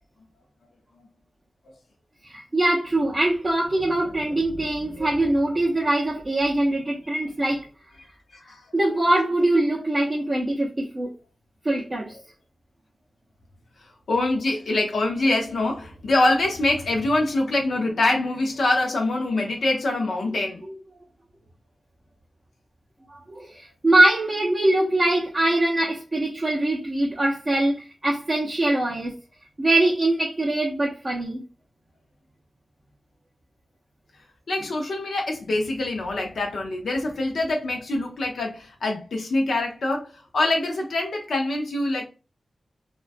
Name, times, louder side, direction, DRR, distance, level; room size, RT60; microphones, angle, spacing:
voice 1, 2.2-7.7 8.7-11.1 11.6-12.2 23.1-29.1 29.6-31.4, right 1 dB, 25° right, 0.5 m, -23 dB
voice 2, 14.1-20.6 34.5-40.1 40.3-42.1, left 2 dB, 85° left, 0.5 m, -24 dB
2.3 x 2.1 x 2.5 m
wide cardioid pair, 145°, 0 cm